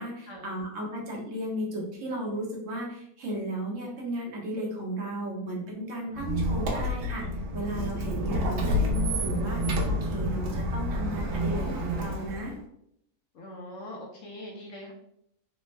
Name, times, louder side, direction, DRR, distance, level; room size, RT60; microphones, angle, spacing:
voice 1, 0.0-12.5, right 1 dB, 60° right, -2 dB, 1.1 m, -35 dB
Squeak, 6.1-12.6, equal, 85° right, 1.2 m, -29 dB
voice 2, 13.3-14.9, left 1 dB, 70° left, 0 dB, 0.9 m, -43 dB
3.3 x 2.1 x 3.1 m, 0.74 s
omnidirectional pair, 1.5 m